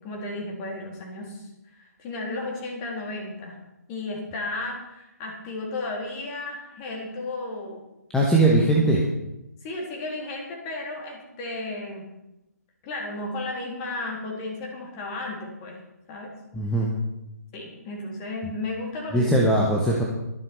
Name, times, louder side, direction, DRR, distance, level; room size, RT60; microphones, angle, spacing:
voice 1, 0.0-3.6 3.9-7.8 9.6-12.1 12.8-15.8 16.1-16.3 17.5-19.4, left 2 dB, 20° left, -1 dB, 3.3 m, -34 dB
voice 2, 8.1-9.0 16.5-16.9 19.1-20.0, right 2 dB, 5° left, -2 dB, 1.3 m, -20 dB
23.0 x 7.8 x 4.5 m, 0.91 s
figure-of-eight pair, 140°, 9 cm